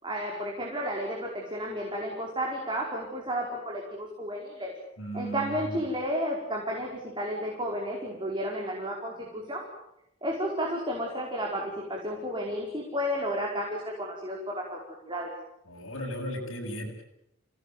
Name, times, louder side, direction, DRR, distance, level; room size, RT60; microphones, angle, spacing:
voice 1, 0.0-4.7 5.1-9.6 10.2-14.8 15.0-15.3, equal, 25° right, -1 dB, 5.0 m, -32 dB
voice 2, 5.0-5.8 15.7-17.0, equal, 70° left, -2 dB, 7.8 m, -36 dB
27.5 x 18.5 x 9.4 m, 0.81 s
head